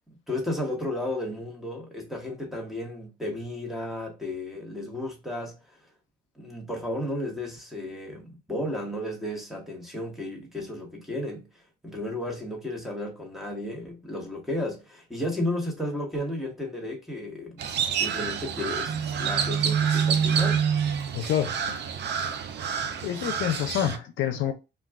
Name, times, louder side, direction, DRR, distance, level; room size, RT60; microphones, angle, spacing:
voice 1, 0.1-5.6 6.4-11.5 11.8-17.6 17.9-20.6, left 1 dB, ahead, 1.1 m, -33 dB
Crow, 17.6-24.0, right 7 dB, 60° right, 0.5 m, -27 dB
voice 2, 21.1-21.8 23.0-24.5, left 10 dB, 80° left, 0.5 m, -28 dB
2.3 x 2.3 x 3.4 m
cardioid pair, 90°, 20 cm